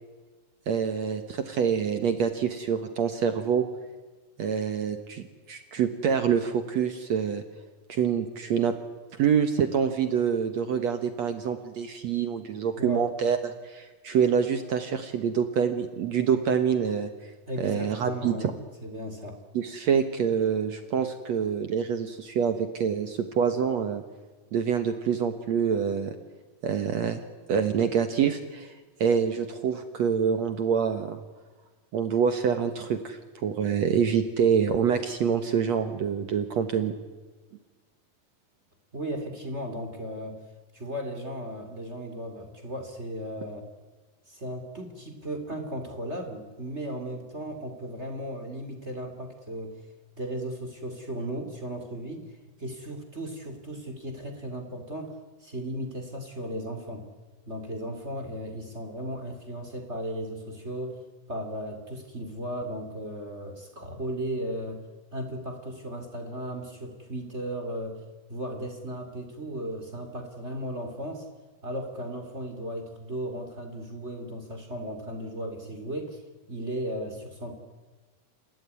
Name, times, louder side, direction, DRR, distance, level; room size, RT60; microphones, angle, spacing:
voice 1, 0.7-3.7 4.4-7.4 7.9-8.7 9.2-17.3 17.6-18.4 19.5-24.0 24.5-26.1 26.6-27.2 27.5-28.7 29.0-31.2 31.9-36.9, right 7 dB, 65° right, 8 dB, 1.8 m, -26 dB
voice 2, 12.8-13.1 17.5-18.5 18.8-19.4 38.9-40.4 40.7-43.7 44.3-49.8 50.2-55.1 55.4-57.1 57.5-61.0 61.3-64.8 65.1-68.0 68.3-71.3 71.6-76.2 76.5-77.5, right 1 dB, 20° right, 5 dB, 2.5 m, -36 dB
29.0 x 15.5 x 9.7 m, 1.3 s
omnidirectional pair, 4.7 m